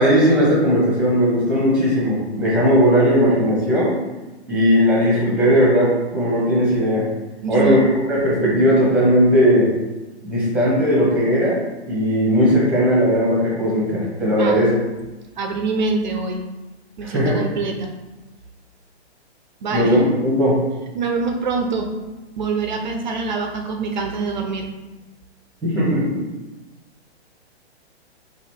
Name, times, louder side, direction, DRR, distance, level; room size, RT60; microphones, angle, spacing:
voice 1, 0.0-4.0 4.5-7.1 7.5-7.8 8.1-9.7 10.2-11.6 11.8-14.7 17.0-17.4 19.7-20.6 25.6-26.2, equal, 5° right, -5 dB, 1.0 m, -17 dB
voice 2, 7.4-7.8 14.4-14.6 15.4-16.4 17.0-17.9 19.6-20.0 20.9-21.9 22.4-24.7, right 4 dB, 45° right, 4 dB, 0.5 m, -24 dB
4.1 x 2.6 x 4.5 m, 1.1 s
hypercardioid pair, 155°, 34 cm